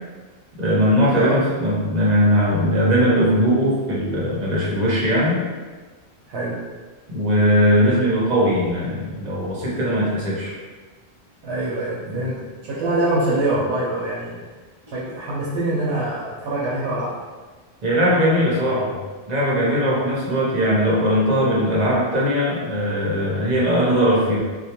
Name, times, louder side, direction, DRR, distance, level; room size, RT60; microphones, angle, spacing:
voice 1, 0.6-5.4 7.1-10.5 12.1-12.2 17.8-19.0 19.3-24.4, equal, 45° right, -6 dB, 0.7 m, -19 dB
voice 2, 1.1-1.4 6.3-6.6 11.4-14.4 14.9-17.2, right 2 dB, 80° right, -8 dB, 0.8 m, -24 dB
2.2 x 2.1 x 2.8 m, 1.4 s
omnidirectional pair, 1.1 m